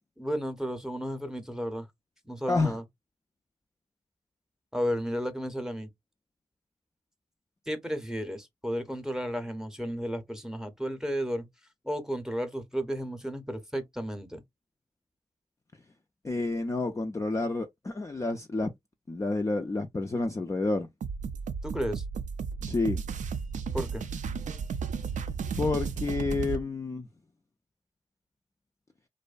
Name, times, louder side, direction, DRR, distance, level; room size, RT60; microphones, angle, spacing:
voice 1, 0.2-1.9 2.2-2.8 4.7-5.9 7.7-11.5 11.8-14.4 21.6-22.0 23.7-24.0, equal, 5° right, 0.7 m, -33 dB
voice 2, 16.2-18.7 19.1-20.9 22.7-23.0 25.6-27.1, left 3 dB, 20° left, 0.4 m, -29 dB
sound 1, 21.0-26.6, right 6 dB, 60° right, 0.4 m, -34 dB
2.6 x 2.2 x 2.3 m
supercardioid pair, 45°, 14 cm